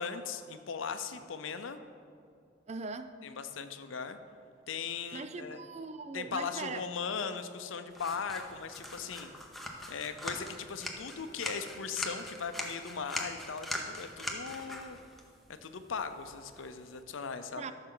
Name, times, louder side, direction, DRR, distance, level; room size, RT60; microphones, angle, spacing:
voice 1, 0.0-1.8 3.2-4.2 4.7-5.6 6.1-9.3 9.9-15.0 15.6-17.7, left 5 dB, 85° left, 9 dB, 0.6 m, -38 dB
voice 2, 2.7-3.1 5.1-6.8 17.6-17.7, right 4 dB, 35° right, 10 dB, 0.4 m, -40 dB
sound 1, 7.9-17.0, left 1 dB, ahead, 0.8 m, -42 dB
13.5 x 6.4 x 3.9 m, 2.4 s
head